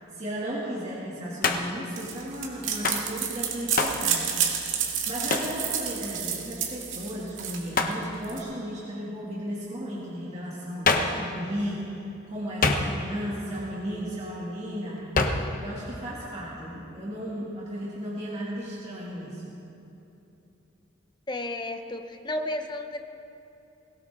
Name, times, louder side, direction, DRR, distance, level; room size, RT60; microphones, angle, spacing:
voice 1, 0.0-4.6 5.1-15.0 15.6-19.5, equal, 35° right, -8 dB, 2.4 m, -35 dB
Hands, 1.4-1.9 2.8-3.1 3.8-4.1 5.3-5.6 7.7-8.0 10.9-11.2 12.6-13.2 15.2-15.5, left 3 dB, 45° left, 1.1 m, -25 dB
sound 1, 2.0-8.4, right 8 dB, 75° right, 2.1 m, -30 dB
voice 2, 21.3-23.0, left 1 dB, 20° left, 6 dB, 0.9 m, -32 dB
21.0 x 17.5 x 3.7 m, 2.9 s
head